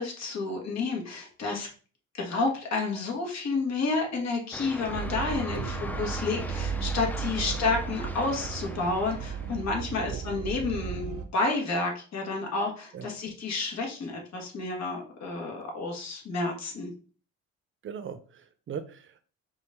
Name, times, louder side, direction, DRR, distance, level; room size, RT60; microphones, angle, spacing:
voice 1, 0.0-1.7 2.1-16.9, left 3 dB, 60° left, 1 dB, 1.5 m, -30 dB
sound 1, 4.5-9.6, left 1 dB, 5° left, 0.4 m, -40 dB
sound 2, 4.9-11.3, right 7 dB, 80° right, 0.7 m, -35 dB
voice 2, 17.8-19.3, right 7 dB, 40° right, 11 dB, 0.6 m, -39 dB
5.0 x 2.6 x 3.5 m, 0.40 s
cardioid pair, 90°, 30 cm